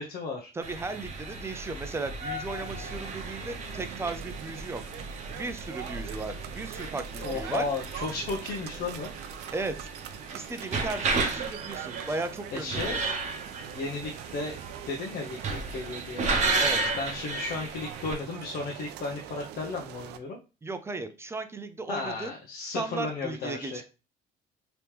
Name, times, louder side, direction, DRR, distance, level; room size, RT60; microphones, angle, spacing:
voice 1, 0.0-0.5 7.2-9.1 12.5-13.1 13.7-14.6 14.9-16.2 17.0-20.4 21.9-23.8, left 3 dB, 60° left, 0 dB, 0.8 m, -34 dB
voice 2, 0.5-4.8 5.3-7.7 9.5-9.9 10.3-13.0 16.6-16.8 20.6-22.3 22.6-23.8, right 3 dB, 15° right, 10 dB, 0.5 m, -36 dB
sound 1, 0.6-18.2, right 3 dB, 45° right, 0.8 m, -34 dB
sound 2, 2.5-20.2, right 11 dB, 80° right, 0.4 m, -43 dB
3.4 x 3.0 x 3.0 m, 0.30 s
cardioid pair, 110°, 17 cm